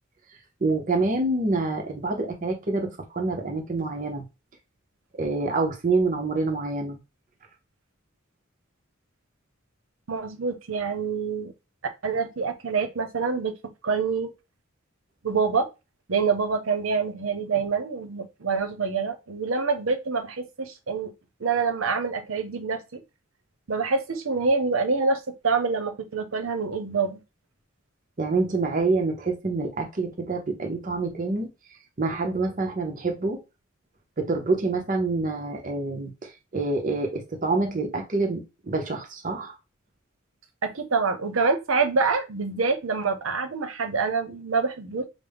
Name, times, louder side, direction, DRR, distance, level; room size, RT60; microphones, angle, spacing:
voice 1, 0.6-4.2 5.1-7.0 28.2-31.5 32.0-33.4 34.2-39.6, right 3 dB, 40° right, 0.7 m, -27 dB
voice 2, 10.1-11.5 12.0-13.6 13.8-14.3 15.2-15.7 16.1-21.1 21.4-23.0 23.7-27.2 40.6-45.0, right 4 dB, 75° right, 0.7 m, -26 dB
5.0 x 2.0 x 3.5 m
head